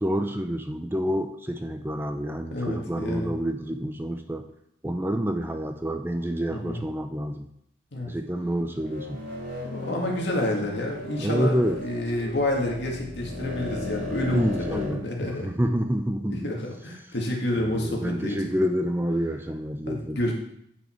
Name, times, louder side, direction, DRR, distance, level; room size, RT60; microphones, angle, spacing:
voice 1, 0.0-4.4 4.8-7.5 8.0-9.2 11.2-11.8 14.3-15.0 15.3-16.5 17.5-20.3, equal, 10° right, 6 dB, 0.4 m, -28 dB
voice 2, 2.5-3.3 6.5-6.8 7.9-8.1 9.6-15.5 16.4-18.4 19.9-20.3, left 1 dB, 70° left, 0 dB, 1.9 m, -29 dB
sound 1, 8.7-14.9, left 2 dB, 80° right, 3.4 m, -36 dB
9.1 x 5.5 x 4.4 m, 0.73 s
head